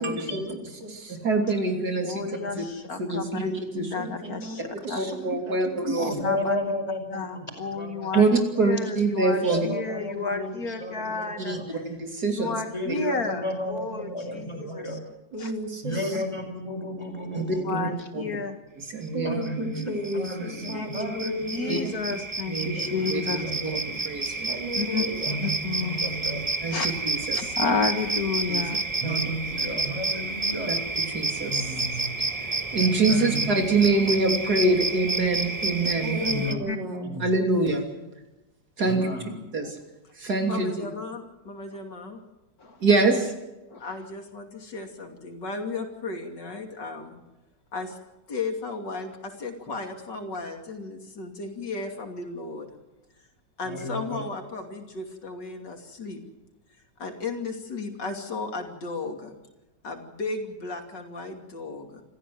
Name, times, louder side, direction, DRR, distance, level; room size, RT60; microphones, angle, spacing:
voice 1, 0.0-1.2 4.0-6.2 15.3-16.2 19.1-22.0 24.5-25.4 36.0-37.2, equal, 80° right, 3 dB, 3.8 m, -34 dB
voice 2, 1.2-2.6 3.0-4.0 5.0-6.1 8.2-8.3 8.6-9.7 11.4-12.6 14.6-14.7 17.3-18.4 18.9-19.3 21.7-21.8 22.5-24.5 26.6-27.4 28.5-28.7 29.0-29.2 31.1-31.5 31.9-32.1 32.7-36.2 37.2-37.8 38.8-39.0 39.5-39.7 40.2-40.7 42.8-43.3, right 3 dB, 60° right, 3 dB, 3.5 m, -25 dB
voice 3, 2.0-5.0 6.0-6.6 7.1-8.2 8.6-11.6 12.3-14.1 14.3-14.8 15.4-15.5 16.1-16.2 17.6-18.6 20.7-20.9 21.5-23.4 24.7-25.0 25.4-26.0 26.7-26.9 27.3-28.8 36.7-36.8 42.6-42.8 43.7-43.8, left 4 dB, 55° left, 7 dB, 2.1 m, -31 dB
voice 4, 6.1-7.5 7.7-8.2 9.4-11.9 12.7-15.0 15.8-17.9 19.2-21.7 22.5-23.8 25.2-26.6 29.0-30.7 31.4-32.0 33.1-33.7 36.2-36.7 37.0-37.3 38.8-39.3 40.9-41.0 53.6-54.2, left 1 dB, 15° left, 4 dB, 5.1 m, -33 dB
sound 1, 19.4-19.5 19.8-36.5, right 3 dB, 20° right, 1.4 m, -30 dB
voice 5, 40.4-42.2 43.8-47.2 47.7-48.0 48.3-52.8 53.6-56.2 57.0-59.4 59.8-62.0, left 3 dB, 75° left, 4 dB, 3.4 m, -35 dB
27.0 x 14.5 x 7.8 m, 1.0 s
omnidirectional pair, 1.9 m